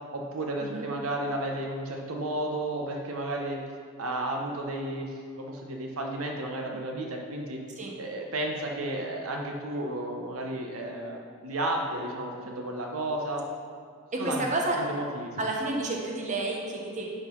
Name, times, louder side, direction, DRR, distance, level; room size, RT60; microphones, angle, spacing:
voice 1, 0.1-3.6 4.0-7.6 8.0-13.4 14.2-14.4 14.8-15.3, right 1 dB, 70° right, 1 dB, 0.9 m, -33 dB
voice 2, 14.1-15.0 15.4-17.1, right 2 dB, 35° right, -1 dB, 1.0 m, -30 dB
10.5 x 3.9 x 5.4 m, 2.2 s
head